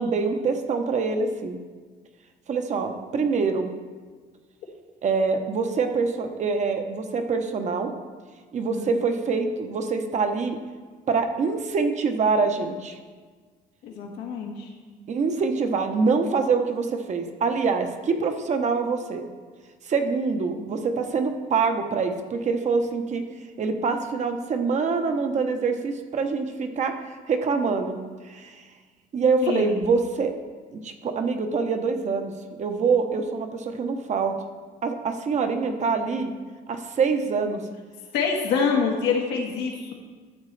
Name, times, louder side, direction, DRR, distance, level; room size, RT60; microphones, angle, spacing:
voice 1, 0.0-1.6 2.5-3.7 5.0-7.9 8.5-10.6 11.1-13.0 15.1-19.2 19.8-23.2 23.6-28.0 28.2-28.6 29.1-30.3 30.7-32.3 32.6-34.3 34.8-36.3 36.7-37.6, right 4 dB, 45° right, 6 dB, 0.9 m, -25 dB
voice 2, 13.8-14.7 29.4-29.8 38.1-39.9, left 5 dB, 90° left, 0 dB, 1.5 m, -26 dB
12.5 x 7.3 x 3.3 m, 1.5 s
cardioid pair, 110°, 17 cm